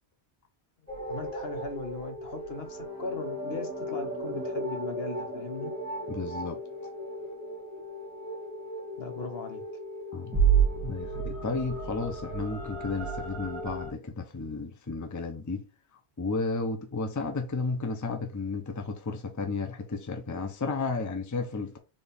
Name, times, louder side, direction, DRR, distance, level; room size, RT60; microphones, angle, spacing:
sound 1, 0.9-13.9, right 4 dB, 15° right, 2.2 m, -32 dB
voice 1, 1.1-5.7 9.0-9.6, left 3 dB, 65° left, 1.2 m, -38 dB
voice 2, 6.1-6.6 10.1-10.3 10.8-15.6 16.2-21.8, left 3 dB, 20° left, 0.6 m, -33 dB
4.3 x 3.6 x 3.5 m
omnidirectional pair, 1.1 m